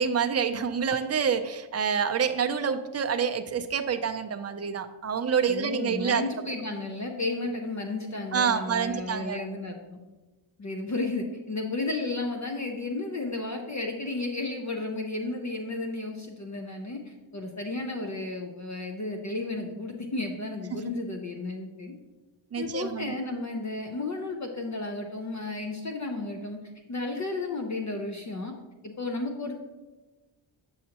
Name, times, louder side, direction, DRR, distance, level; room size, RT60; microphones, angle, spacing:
voice 1, 0.0-6.2 8.3-9.4 20.7-20.8 22.5-23.1, right 6 dB, 35° right, 7 dB, 0.4 m, -27 dB
voice 2, 5.5-10.0 10.6-21.9 22.6-26.6 26.9-28.5 28.8-29.5, left 2 dB, 35° left, 3 dB, 0.6 m, -33 dB
7.6 x 6.4 x 2.9 m, 1.2 s
wide cardioid pair, 140°, 50 cm